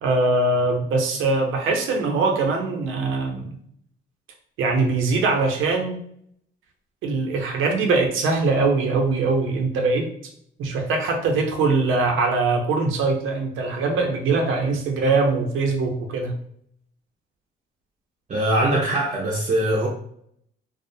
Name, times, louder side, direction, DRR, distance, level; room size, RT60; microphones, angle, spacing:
voice 1, 0.0-3.4 4.6-6.0 7.0-10.1 10.6-16.3, right 3 dB, 85° right, 2 dB, 0.6 m, -22 dB
voice 2, 18.3-19.9, right 1 dB, 40° right, -3 dB, 0.5 m, -22 dB
2.4 x 2.0 x 2.6 m, 0.68 s
cardioid pair, 90°, 20 cm